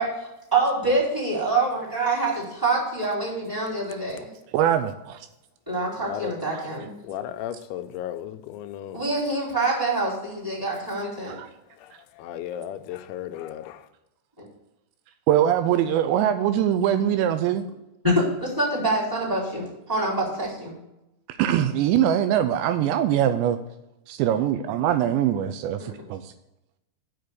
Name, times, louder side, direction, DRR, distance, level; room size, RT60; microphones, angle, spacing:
voice 1, 0.0-4.3 5.7-7.0 8.9-11.4 14.4-14.5 18.0-20.8 25.8-25.9, right 2 dB, 5° right, -6 dB, 3.8 m, -26 dB
voice 2, 4.5-5.3 6.5-6.6 11.3-11.5 15.3-17.6 21.4-23.6 24.1-26.3, right 10 dB, 85° right, 9 dB, 2.6 m, -22 dB
voice 3, 6.0-6.3 7.0-9.0 11.8-13.9, left 11 dB, 85° left, 8 dB, 3.0 m, -35 dB
7.6 x 6.8 x 7.9 m, 0.91 s
omnidirectional pair, 5.4 m